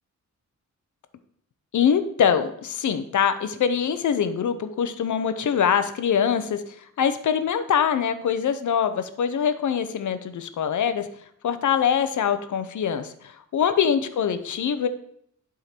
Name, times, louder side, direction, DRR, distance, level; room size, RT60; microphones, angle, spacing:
voice 1, 1.7-11.1 11.4-14.9, left 7 dB, 80° left, 11 dB, 0.7 m, -23 dB
11.0 x 3.8 x 4.3 m, 0.68 s
wide cardioid pair, 95°, 30 cm